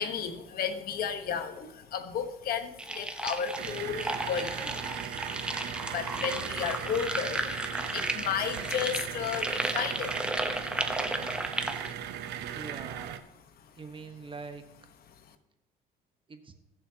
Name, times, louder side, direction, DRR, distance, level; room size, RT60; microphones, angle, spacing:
voice 1, 0.0-5.0 5.4-5.6 5.8-10.5 10.8-12.4 13.7-13.8 15.1-15.3, left 7 dB, 60° left, 1.1 m, -34 dB
sound 1, 2.8-11.9, right 1 dB, 5° right, 0.9 m, -34 dB
sound 2, 3.6-13.2, right 10 dB, 80° right, 0.8 m, -38 dB
voice 2, 12.5-13.2 13.8-14.6 16.3-16.5, right 4 dB, 30° right, 1.2 m, -43 dB
20.5 x 7.1 x 2.9 m
cardioid pair, 110°, 17 cm